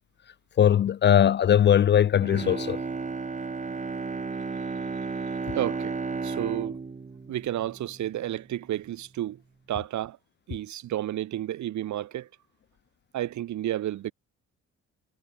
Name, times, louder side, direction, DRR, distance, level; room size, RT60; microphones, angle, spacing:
voice 1, 0.6-2.8, left 9 dB, 35° left, 0.4 m, -20 dB
Bowed string instrument, 2.2-8.4 8.8-8.9, right 4 dB, 25° right, 1.6 m, -33 dB
voice 2, 5.5-6.8 7.3-9.4 9.7-10.2 10.5-12.3 13.1-14.1, right 13 dB, 70° right, 1.3 m, -31 dB
cardioid pair, 90°, 30 cm